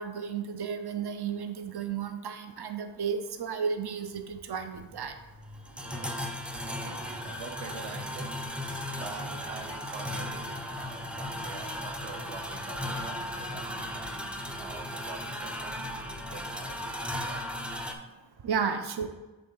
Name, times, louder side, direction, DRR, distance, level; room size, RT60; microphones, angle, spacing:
voice 1, 0.0-5.1 18.4-19.1, right 6 dB, 50° right, 8 dB, 0.7 m, -33 dB
sound 1, 4.8-17.9, left 1 dB, ahead, 0.5 m, -36 dB
voice 2, 5.8-6.3 6.7-17.5, right 5 dB, 85° right, 5 dB, 0.9 m, -46 dB
6.1 x 3.5 x 5.5 m, 1.1 s
wide cardioid pair, 85°, 50 cm